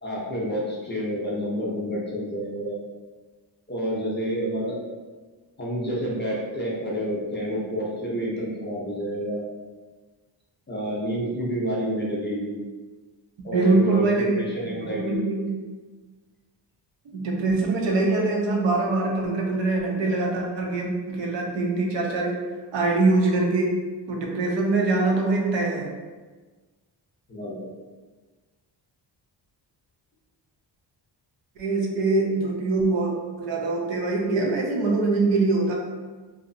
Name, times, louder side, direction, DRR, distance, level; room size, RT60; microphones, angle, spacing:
voice 1, 0.0-2.8 3.7-4.8 5.6-9.5 10.7-12.6 13.4-14.1 14.3-15.3 27.3-27.7, equal, 25° left, -6 dB, 0.4 m, -29 dB
voice 2, 13.5-14.4 14.8-15.6 17.1-22.4 22.7-23.8 24.1-25.9 31.6-33.1 33.4-35.7, right 3 dB, 70° right, -1 dB, 0.6 m, -23 dB
2.7 x 2.0 x 2.5 m, 1.3 s
wide cardioid pair, 145°, 46 cm